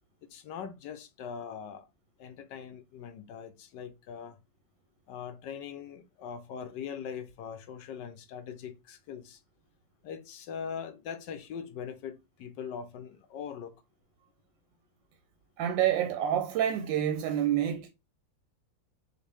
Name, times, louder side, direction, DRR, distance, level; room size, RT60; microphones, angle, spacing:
voice 1, 0.3-1.9 2.2-4.4 5.1-9.4 10.0-13.7, left 7 dB, 75° left, 1.2 m, -41 dB
voice 2, 15.6-17.9, right 10 dB, 90° right, 1.3 m, -28 dB
6.3 x 2.5 x 3.3 m
omnidirectional pair, 2.0 m